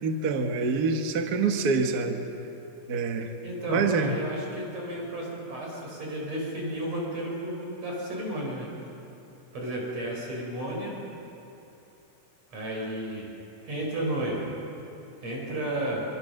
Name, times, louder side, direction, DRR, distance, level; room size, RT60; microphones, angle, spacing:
voice 1, 0.0-2.2 2.9-3.3 3.7-4.1, right 4 dB, 70° right, 4 dB, 0.9 m, -26 dB
voice 2, 3.4-8.7 9.5-11.0 12.5-13.3 13.6-14.5 15.2-16.1, right 1 dB, 45° right, -2 dB, 5.6 m, -33 dB
24.5 x 24.0 x 6.6 m, 2.9 s
omnidirectional pair, 4.2 m